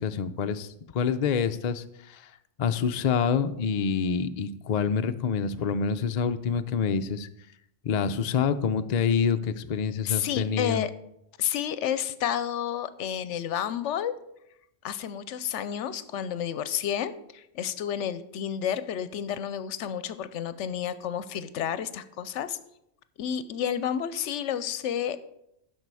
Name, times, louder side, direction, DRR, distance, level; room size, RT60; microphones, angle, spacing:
voice 1, 0.0-2.3 2.6-7.3 7.8-10.8, left 6 dB, 55° left, 9 dB, 0.4 m, -27 dB
voice 2, 10.1-10.9 11.4-14.1 14.8-22.6 23.2-25.2, left 9 dB, 75° left, 14 dB, 0.9 m, -30 dB
11.0 x 6.2 x 4.7 m, 0.81 s
omnidirectional pair, 1.3 m